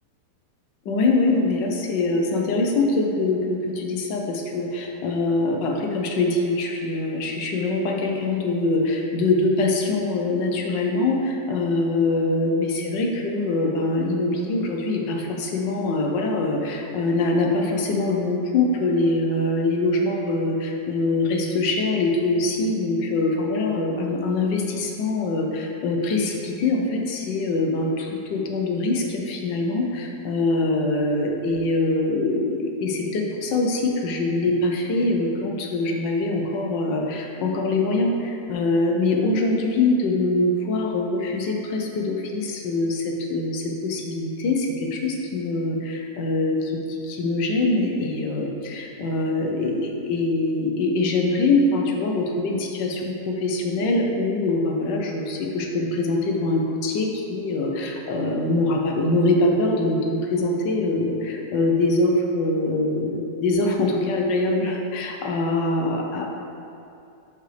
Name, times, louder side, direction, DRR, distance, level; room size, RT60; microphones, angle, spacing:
voice 1, 0.8-66.3, left 2 dB, 85° left, 1 dB, 1.6 m, -23 dB
11.5 x 5.3 x 3.3 m, 2.7 s
omnidirectional pair, 1.9 m